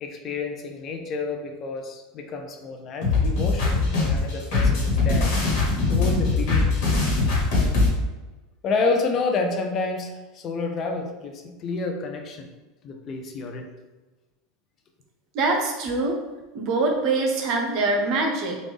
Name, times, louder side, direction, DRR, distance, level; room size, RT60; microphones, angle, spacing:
voice 1, 0.0-5.3 5.9-7.0 8.6-12.5 12.8-13.7, left 3 dB, 40° left, 4 dB, 0.6 m, -29 dB
sound 1, 3.0-7.9, left 3 dB, 60° left, 1.4 m, -21 dB
voice 2, 15.3-16.2 16.5-18.6, right 3 dB, 55° right, 1 dB, 0.7 m, -24 dB
3.2 x 2.5 x 3.4 m, 1.2 s
hypercardioid pair, 95°, 0 cm